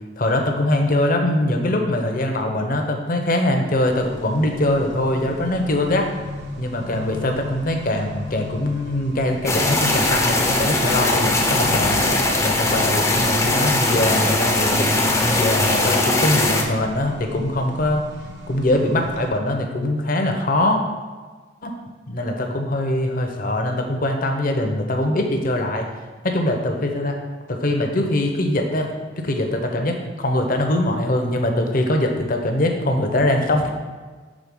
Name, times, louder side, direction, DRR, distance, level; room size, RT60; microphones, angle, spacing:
voice 1, 0.2-6.1 6.6-12.0 12.4-18.0 18.5-20.8 21.6-21.7 22.1-25.9 26.2-27.2 27.5-33.7, left 1 dB, 45° left, 3 dB, 0.8 m, -22 dB
Accelerating revving vroom, 3.9-19.3, left 2 dB, 60° right, 0.9 m, -35 dB
sound 1, 9.4-16.6, left 2 dB, 15° left, 0.6 m, -20 dB
6.3 x 3.8 x 5.4 m, 1.4 s
head